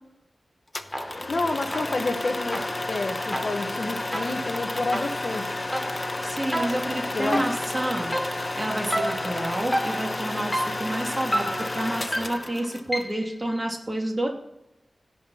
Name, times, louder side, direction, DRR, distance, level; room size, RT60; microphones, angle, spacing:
sound 1, 0.7-13.0, left 2 dB, 30° left, 0.8 m, -31 dB
sound 2, 0.9-1.4 1.7-13.3, equal, 10° left, 2.7 m, -32 dB
voice 1, 1.3-5.6 7.1-7.5, left 2 dB, 50° left, 6 dB, 1.1 m, -29 dB
voice 2, 6.2-8.1 8.5-14.3, right 1 dB, 25° right, 1 dB, 2.6 m, -29 dB
16.5 x 5.7 x 5.6 m, 0.87 s
wide cardioid pair, 110°, 0 cm